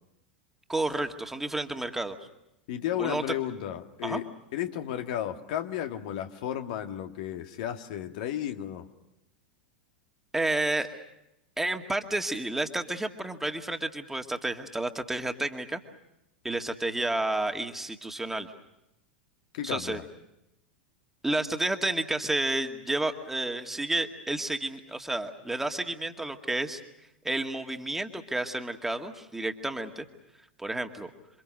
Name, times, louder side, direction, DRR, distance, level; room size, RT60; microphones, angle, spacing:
voice 1, 0.7-2.2 3.0-3.2 4.0-4.2 10.3-10.9 11.6-15.8 16.4-18.5 19.6-20.0 21.2-26.8 27.2-30.1 30.6-31.1, right 2 dB, 5° right, 5 dB, 2.1 m, -30 dB
voice 2, 2.7-8.9 19.5-20.0, left 11 dB, 55° left, 6 dB, 1.9 m, -33 dB
28.0 x 25.5 x 6.5 m, 0.89 s
figure-of-eight pair, 90°, 5 cm